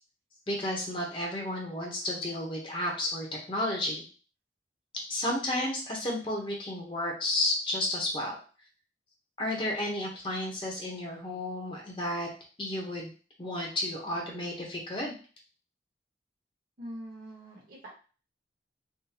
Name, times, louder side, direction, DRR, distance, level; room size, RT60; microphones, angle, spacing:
voice 1, 0.5-4.0 5.1-8.4 9.4-12.3 12.6-13.1 13.4-15.1, left 1 dB, 30° left, -1 dB, 0.9 m, -32 dB
voice 2, 16.8-17.9, equal, 50° right, -2 dB, 1.4 m, -43 dB
3.6 x 2.2 x 4.3 m, 0.38 s
head